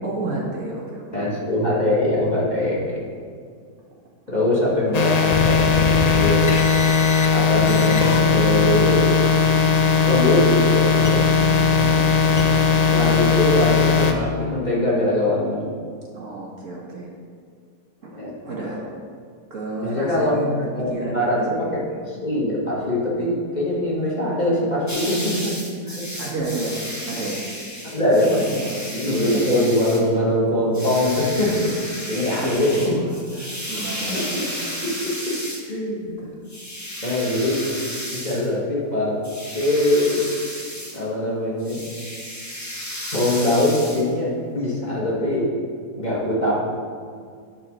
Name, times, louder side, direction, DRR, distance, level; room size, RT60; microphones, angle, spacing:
voice 1, 0.0-1.2 11.8-12.4 16.1-17.1 18.0-18.1 18.4-18.8 19.5-20.5 20.9-22.1 26.2-26.8 27.1-27.4 28.1-29.4 32.3-34.7 35.9-36.4, right 2 dB, 55° right, -4 dB, 1.8 m, -31 dB
voice 2, 1.1-3.0 4.3-6.4 7.3-9.2 10.1-11.2 12.9-15.8 18.1-18.3 18.7-18.8 19.8-21.7 22.0-26.1 27.8-28.3 28.9-33.0 34.1-34.4 34.8-35.0 35.3-35.4 35.7-36.3 37.0-37.7 38.1-39.2 39.5-40.3 40.9-41.8 43.1-45.5 46.0-46.6, left 1 dB, 25° left, -6 dB, 1.7 m, -22 dB
sound 1, 4.9-14.1, left 5 dB, 65° left, 0.4 m, -18 dB
sound 2, 24.9-30.1 30.7-35.7 36.5-38.5 39.2-41.0 41.6-44.1, equal, 10° left, 1.1 m, -33 dB
11.0 x 4.3 x 6.3 m, 2.1 s
omnidirectional pair, 1.7 m